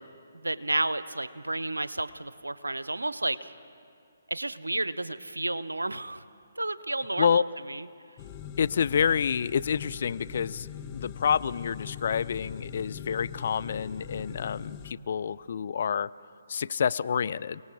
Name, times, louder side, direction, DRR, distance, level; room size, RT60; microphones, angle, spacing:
voice 1, 0.3-3.5 4.3-6.2 6.6-7.4 7.7-7.9, right 2 dB, 80° right, 15 dB, 0.8 m, -31 dB
sound 1, 8.2-14.9, left 8 dB, 25° left, 0.9 m, -41 dB
voice 2, 8.6-10.7 10.9-16.1 16.5-17.6, left 7 dB, 50° left, 18 dB, 0.4 m, -28 dB
29.5 x 18.5 x 4.9 m, 2.6 s
figure-of-eight pair, 135°, 0 cm